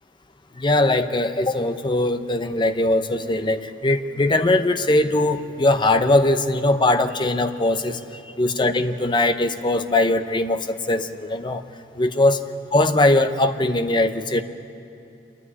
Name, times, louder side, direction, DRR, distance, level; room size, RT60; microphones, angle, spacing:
voice 1, 0.5-8.0 8.4-11.6 12.0-12.4 12.7-14.4, left 2 dB, 25° left, 9 dB, 0.8 m, -20 dB
27.0 x 11.5 x 9.6 m, 2.7 s
head